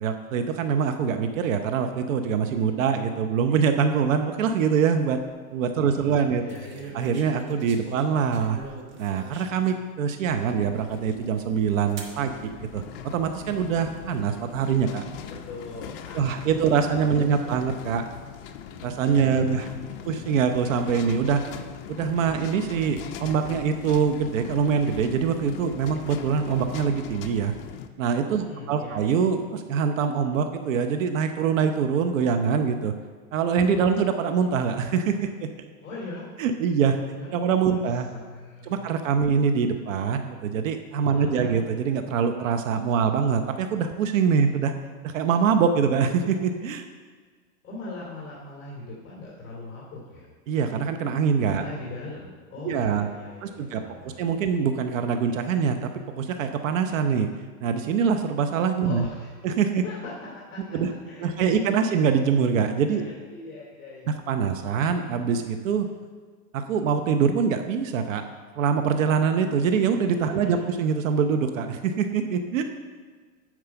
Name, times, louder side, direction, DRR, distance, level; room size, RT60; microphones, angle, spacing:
voice 1, 0.0-5.2 5.5-6.4 6.9-8.6 9.0-12.8 13.1-15.0 16.1-18.0 18.8-19.7 20.1-21.4 21.9-27.5 28.0-32.9 33.3-35.5 36.4-37.0 37.3-38.1 38.6-44.7 45.0-46.8 50.5-51.7 52.6-53.1 53.4-55.9 56.2-57.3 57.6-59.1 59.4-59.8 60.7-60.9 61.2-63.0 64.3-65.9 66.5-68.2 68.6-72.6, right 6 dB, 60° right, 7 dB, 0.8 m, -24 dB
sound 1, 4.8-5.2 6.5-9.8 10.4-10.5 12.0-12.2 13.1-13.6, right 2 dB, 25° right, 1.2 m, -42 dB
voice 2, 5.8-6.1 6.4-6.9 15.2-17.5 19.1-20.0 28.3-29.0 35.8-36.2 37.1-37.3 37.7-38.9 41.1-41.5 47.6-50.3 51.5-54.2 58.8-59.3 59.8-60.1 60.5-60.8 61.0-61.3 61.8-62.0 62.8-64.1 64.4-64.5 70.3-70.7, left 3 dB, 25° left, -6 dB, 2.5 m, -41 dB
sound 2, 10.3-27.9, left 9 dB, 40° left, 0.6 m, -40 dB
9.7 x 4.7 x 6.8 m, 1.5 s
hypercardioid pair, 140°, 43 cm